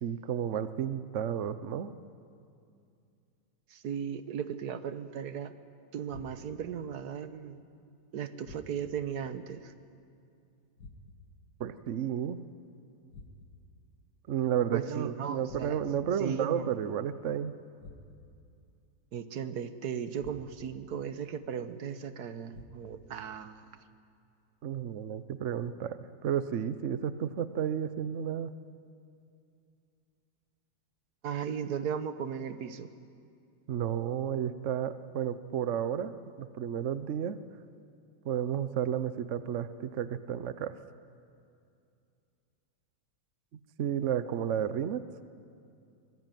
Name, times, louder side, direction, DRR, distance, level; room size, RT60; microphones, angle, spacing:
voice 1, 0.0-1.9 11.6-12.4 14.3-17.5 24.6-28.5 33.7-36.1 36.4-37.4 38.2-40.7 43.8-45.0, right 9 dB, 55° right, 13 dB, 1.0 m, -32 dB
voice 2, 3.7-5.5 5.9-7.6 8.1-9.7 14.7-15.8 16.2-16.7 19.1-23.7 31.2-32.9, right 7 dB, 70° right, 12 dB, 1.5 m, -36 dB
sound 1, 6.1-6.7 8.4-9.1 10.8-11.4 13.1-13.7 15.4-16.1 17.8-18.4 20.2-20.8 22.5-23.1, left 2 dB, 75° left, 2.4 m, -51 dB
24.5 x 20.0 x 9.1 m, 2.5 s
omnidirectional pair, 1.8 m